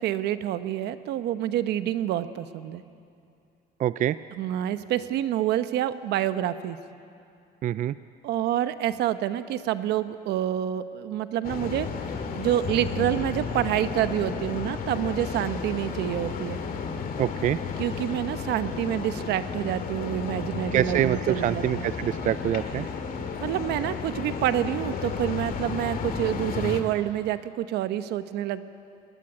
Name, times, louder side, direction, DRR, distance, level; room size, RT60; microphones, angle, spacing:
voice 1, 0.0-2.8 4.3-6.8 8.2-16.6 17.8-21.9 23.4-28.6, right 12 dB, 80° right, 12 dB, 1.0 m, -28 dB
voice 2, 3.8-4.2 7.6-7.9 17.2-17.6 20.7-22.9, right 11 dB, 50° right, 15 dB, 0.4 m, -25 dB
sound 1, 11.4-26.8, left 5 dB, 60° left, 2.2 m, -33 dB
21.0 x 17.5 x 9.8 m, 2.5 s
cardioid pair, 110°, 17 cm